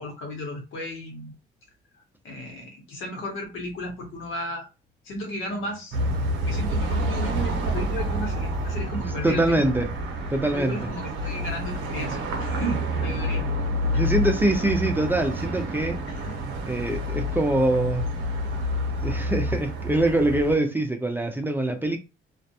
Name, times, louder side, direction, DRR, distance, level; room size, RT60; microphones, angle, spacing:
voice 1, 0.0-1.3 2.2-4.7 5.0-6.0 6.4-9.6 10.4-13.4 13.9-14.3 16.1-16.4, equal, 80° left, 1.2 m, -34 dB
sound 1, 5.9-20.5, equal, 90° right, 0.7 m, -28 dB
voice 2, 9.2-9.9 10.3-10.9 13.9-16.0 16.6-18.1 19.0-22.0, right 1 dB, 10° right, 0.5 m, -24 dB
2.4 x 2.1 x 2.8 m
cardioid pair, 90°, 20 cm